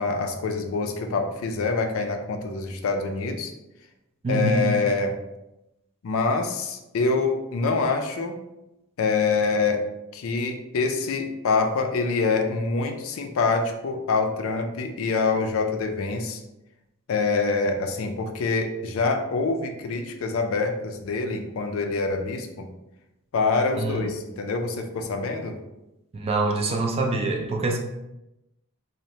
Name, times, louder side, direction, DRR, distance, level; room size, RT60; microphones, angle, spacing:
voice 1, 0.0-3.5 4.3-5.2 6.0-8.4 9.0-9.8 10.1-16.4 17.1-22.7 23.3-25.6, left 4 dB, 65° left, 5 dB, 0.4 m, -25 dB
voice 2, 4.2-4.7 23.8-24.1 26.1-27.8, right 2 dB, 25° right, 2 dB, 0.3 m, -25 dB
2.7 x 2.0 x 3.0 m, 0.92 s
head